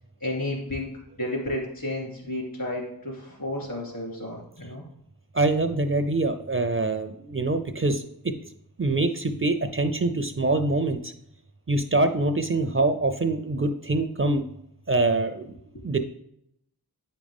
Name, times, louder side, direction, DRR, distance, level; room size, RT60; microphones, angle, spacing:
voice 1, 0.2-0.9 1.2-4.8, left 1 dB, 60° left, -3 dB, 3.0 m, -32 dB
voice 2, 5.3-8.3 8.8-11.1 11.7-14.4 14.9-15.5 15.8-16.0, right 2 dB, 35° right, 8 dB, 0.5 m, -24 dB
9.0 x 5.0 x 3.5 m, 0.75 s
wide cardioid pair, 60°, 39 cm